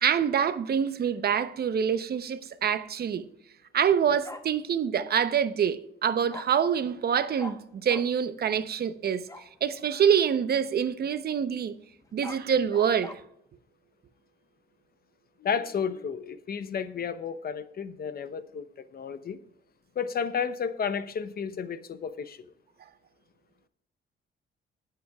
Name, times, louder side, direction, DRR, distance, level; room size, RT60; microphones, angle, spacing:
voice 1, 0.0-3.2 3.7-9.3 9.6-11.7 12.1-13.2, right 8 dB, 50° right, 0.8 m, -26 dB
Bark, 4.2-4.4 6.3-6.4 7.4-7.5 7.9-8.0 9.3-9.5 12.0-13.1, left 2 dB, 15° left, 1.1 m, -41 dB
voice 2, 15.4-18.7 18.9-19.4 20.0-22.4, left 6 dB, 50° left, 0.8 m, -32 dB
22.0 x 7.7 x 2.4 m
cardioid pair, 90°, 20 cm